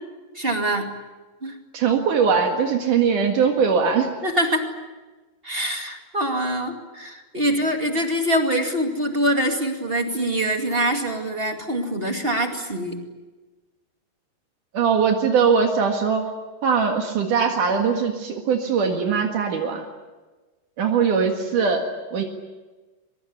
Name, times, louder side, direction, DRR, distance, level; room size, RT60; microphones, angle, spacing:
voice 1, 0.3-0.9 1.4-1.6 4.2-4.7 5.4-13.0, right 1 dB, 20° right, 3 dB, 2.1 m, -24 dB
voice 2, 1.7-4.1 14.7-16.3 16.6-19.9 20.8-21.8 22.1-22.2, right 6 dB, 75° right, 3 dB, 3.4 m, -21 dB
23.5 x 23.0 x 9.5 m, 1.2 s
omnidirectional pair, 3.7 m